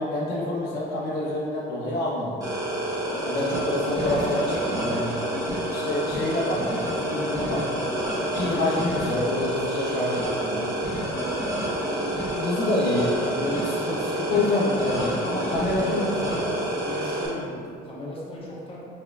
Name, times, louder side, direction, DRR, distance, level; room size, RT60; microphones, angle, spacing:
voice 1, 0.0-2.4 3.2-5.2 5.7-7.9 8.2-10.7 11.9-16.0, left 1 dB, 80° left, -4 dB, 0.7 m, -27 dB
sound 1, 2.4-17.3, right 1 dB, 20° right, 1.2 m, -28 dB
voice 2, 15.8-16.6 16.8-18.8, left 1 dB, 30° left, -6 dB, 1.1 m, -37 dB
4.2 x 3.6 x 2.3 m, 2.4 s
cardioid pair, 110°, 17 cm